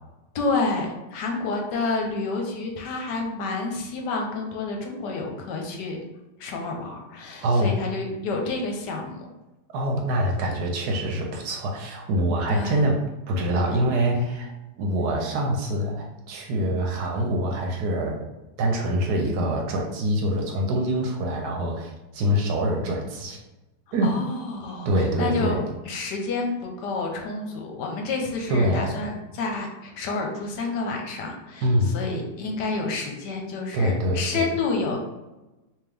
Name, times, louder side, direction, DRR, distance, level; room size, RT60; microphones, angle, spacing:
voice 1, 0.3-6.0 6.4-9.3 12.5-12.8 24.0-25.6 25.8-31.7 31.9-35.0, left 3 dB, 80° left, 2 dB, 1.3 m, -29 dB
voice 2, 7.4-7.8 9.7-13.0 13.3-14.5 14.8-18.2 18.6-23.4 23.9-24.1 24.8-25.6 28.5-28.9 31.6-32.0 33.7-34.5, equal, 70° right, 1 dB, 1.2 m, -25 dB
3.6 x 2.9 x 3.4 m, 1.0 s
omnidirectional pair, 1.8 m